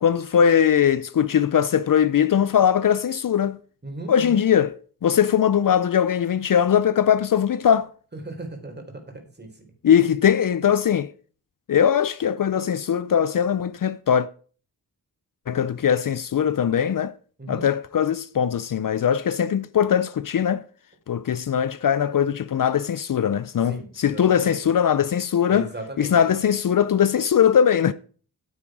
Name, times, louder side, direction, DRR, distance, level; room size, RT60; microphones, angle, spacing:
voice 1, 0.0-3.6 4.1-7.9 9.8-11.1 11.7-14.3 15.5-17.1 17.5-20.6 21.1-25.7 26.0-27.9, left 8 dB, 60° left, 0.6 m, -20 dB
voice 2, 3.8-4.4 8.1-8.7 9.4-9.5 9.8-9.9 17.4-17.7 23.7-24.5 25.5-26.1, right 2 dB, 25° right, 3.9 m, -36 dB
9.2 x 8.5 x 6.1 m
wide cardioid pair, 80°, 38 cm